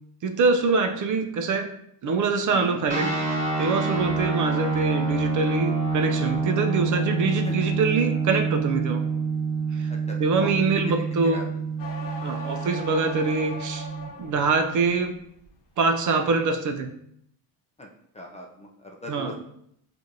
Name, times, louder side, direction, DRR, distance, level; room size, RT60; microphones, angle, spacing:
voice 1, 0.2-1.7 2.0-3.2 3.6-9.1 9.7-9.9 10.2-11.5 12.2-13.9 14.2-15.2 15.8-16.9 19.1-19.4, right 4 dB, 50° right, 6 dB, 0.5 m, -24 dB
voice 2, 2.5-2.8 7.4-7.5 9.9-10.5 11.3-11.4 17.8-17.9 18.1-19.4, left 1 dB, 15° left, 0 dB, 0.4 m, -39 dB
sound 1, 2.9-14.1, right 4 dB, 20° right, 1.3 m, -27 dB
sound 2, 11.8-14.5 14.9-15.5, left 3 dB, 80° left, 0.8 m, -38 dB
5.9 x 2.5 x 2.6 m, 0.71 s
cardioid pair, 130°, 41 cm